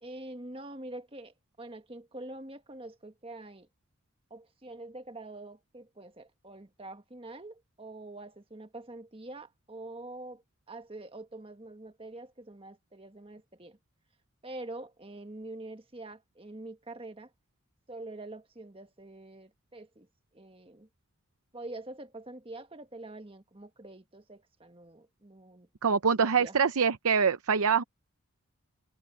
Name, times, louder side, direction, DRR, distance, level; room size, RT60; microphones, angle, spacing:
voice 1, 0.0-3.7 4.3-13.8 14.4-17.3 17.9-20.1 20.3-20.9 21.5-26.5, right 2 dB, 25° right, 1.5 m, -45 dB
voice 2, 25.8-27.8, right 6 dB, 90° right, 0.7 m, -24 dB
open air
head